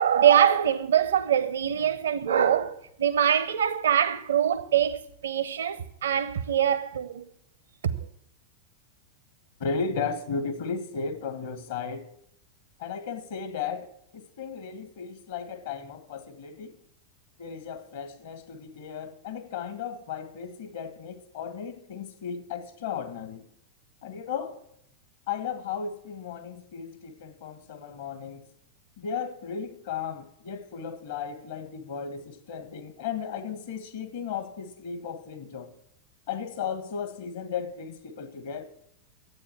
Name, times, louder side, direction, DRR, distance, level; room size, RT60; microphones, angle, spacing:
voice 1, 0.0-7.2 7.8-7.9, right 9 dB, 65° right, 0.8 m, -23 dB
voice 2, 9.6-12.0 12.8-16.8 17.4-23.5 24.0-24.6 25.3-28.5 29.0-35.7 36.3-38.6, left 6 dB, 55° left, 1.5 m, -35 dB
12.5 x 8.8 x 5.9 m
figure-of-eight pair, 90°, 0 cm